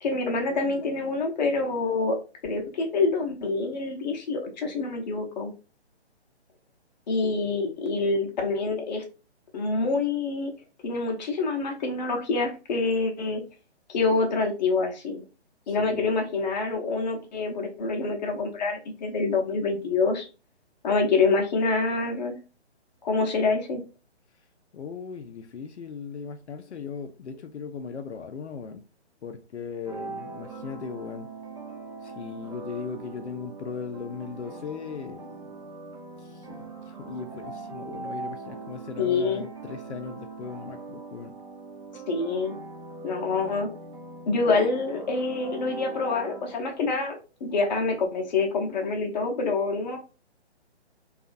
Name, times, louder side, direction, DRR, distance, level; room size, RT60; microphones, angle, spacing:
voice 1, 0.0-2.2 2.4-5.5 7.1-9.0 9.5-10.5 10.8-13.4 13.9-15.2 15.7-20.3 20.8-22.4 23.0-23.8 39.0-39.4 42.1-42.6 43.0-43.7 44.3-50.0, left 3 dB, 40° left, 0.6 m, -26 dB
voice 2, 15.7-16.0 24.7-28.8 29.2-31.3 32.0-35.6 36.2-41.3, left 5 dB, 80° left, 0.5 m, -38 dB
sound 1, 29.8-47.1, right 3 dB, 25° right, 0.6 m, -41 dB
2.6 x 2.4 x 2.3 m
figure-of-eight pair, 140°, 34 cm